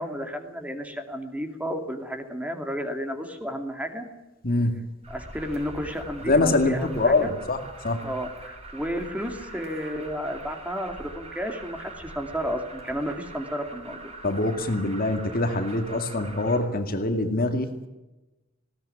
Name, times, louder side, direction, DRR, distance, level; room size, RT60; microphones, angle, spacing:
voice 1, 0.0-4.1 5.1-7.3 8.0-14.1, equal, 5° right, 5 dB, 2.5 m, -32 dB
voice 2, 4.4-4.8 6.3-8.0 14.2-17.9, left 2 dB, 45° left, 7 dB, 2.3 m, -24 dB
Alarm, 5.0-16.6, right 2 dB, 30° right, 6.2 m, -43 dB
20.0 x 18.0 x 9.9 m, 1.0 s
head